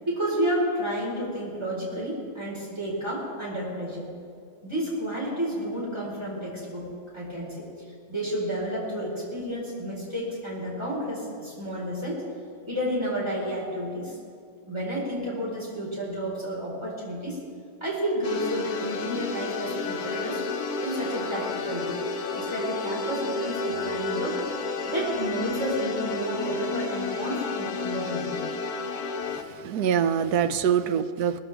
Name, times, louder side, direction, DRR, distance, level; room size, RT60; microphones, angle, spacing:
voice 1, 0.0-4.1 4.6-6.9 7.1-7.6 8.1-12.2 12.7-14.2 14.7-17.4 17.8-20.4 20.8-22.0 22.3-24.4 24.9-28.5, equal, 15° right, -5 dB, 4.6 m, -31 dB
sound 1, 18.2-29.4, left 3 dB, 80° left, 1.5 m, -31 dB
voice 2, 29.3-31.4, right 8 dB, 80° right, 11 dB, 1.2 m, -25 dB
20.0 x 14.0 x 3.5 m, 2.3 s
omnidirectional pair, 1.6 m